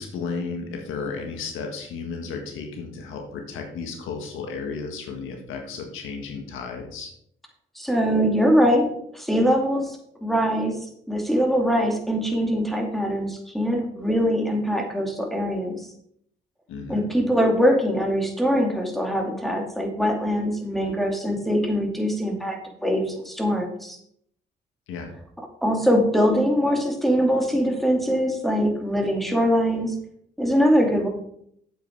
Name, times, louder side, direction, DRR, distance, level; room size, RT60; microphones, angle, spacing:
voice 1, 0.0-7.1 16.7-17.1 24.9-25.1, left 4 dB, 90° left, 4 dB, 1.7 m, -33 dB
voice 2, 7.8-8.9 9.1-10.8 11.1-15.9 16.9-24.0 25.6-30.0 30.4-31.1, equal, ahead, 1 dB, 2.5 m, -22 dB
9.1 x 7.7 x 4.6 m, 0.70 s
cardioid pair, 90°, 20 cm